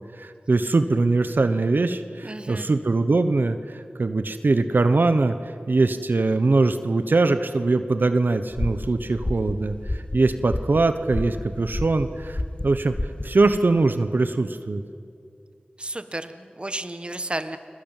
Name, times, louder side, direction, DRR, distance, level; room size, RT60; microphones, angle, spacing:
voice 1, 0.1-14.8, right 3 dB, 80° right, 10 dB, 1.1 m, -22 dB
voice 2, 2.2-2.7 15.8-17.6, right 1 dB, 30° right, 10 dB, 1.5 m, -32 dB
sound 1, 8.5-13.6, left 1 dB, 35° left, 1.4 m, -31 dB
30.0 x 21.5 x 9.1 m, 2.4 s
wide cardioid pair, 50°, 3 cm